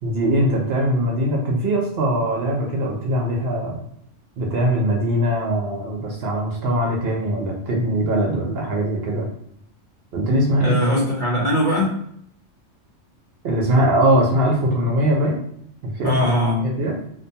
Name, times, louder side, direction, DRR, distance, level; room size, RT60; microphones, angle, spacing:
voice 1, 0.0-3.8 4.4-9.3 10.1-10.8 13.4-15.4 15.8-16.1 16.6-17.0, right 1 dB, 65° right, -1 dB, 0.7 m, -21 dB
voice 2, 10.6-11.9 16.0-16.7, equal, 60° left, -4 dB, 0.5 m, -20 dB
2.4 x 2.2 x 2.7 m, 0.68 s
omnidirectional pair, 1.3 m